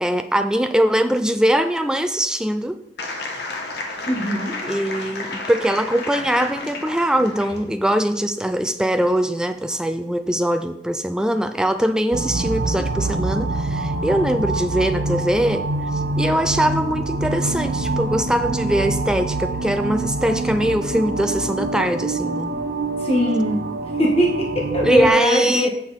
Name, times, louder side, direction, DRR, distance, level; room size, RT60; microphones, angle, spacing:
voice 1, 0.0-2.8 4.6-15.7 15.9-22.6 24.8-25.7, right 1 dB, 5° right, 8 dB, 0.4 m, -22 dB
sound 1, 3.0-7.7, left 2 dB, 60° left, 1.2 m, -31 dB
voice 2, 4.1-4.5 23.0-23.6 24.0-25.7, equal, 30° left, -1 dB, 1.5 m, -20 dB
sound 2, 12.1-25.1, right 2 dB, 55° right, 0.7 m, -25 dB
7.8 x 6.8 x 4.2 m, 0.81 s
head